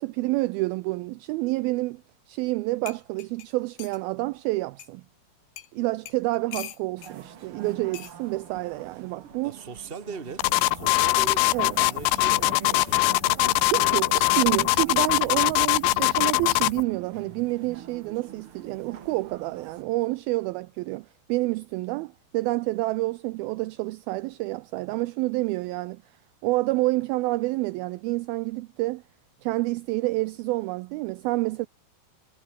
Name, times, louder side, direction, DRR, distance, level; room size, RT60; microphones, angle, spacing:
voice 1, 0.0-2.0 2.3-5.0 5.7-9.6 11.5-11.8 13.7-26.0 26.4-29.0 29.4-31.7, right 21 dB, 85° right, 2.1 m, -28 dB
sound 1, 2.5-2.6 2.9-4.0 4.8-4.9 5.6-5.7 6.1-7.1 7.9-8.2 9.3-9.6, left 11 dB, 65° left, 3.5 m, -41 dB
sound 2, 7.0-19.8, right 8 dB, 55° right, 1.6 m, -43 dB
voice 2, 9.4-11.5 11.8-13.5 13.7-14.3, right 5 dB, 20° right, 1.8 m, -40 dB
sound 3, 10.4-16.8, left 20 dB, 80° left, 2.7 m, -22 dB
omnidirectional pair, 4.8 m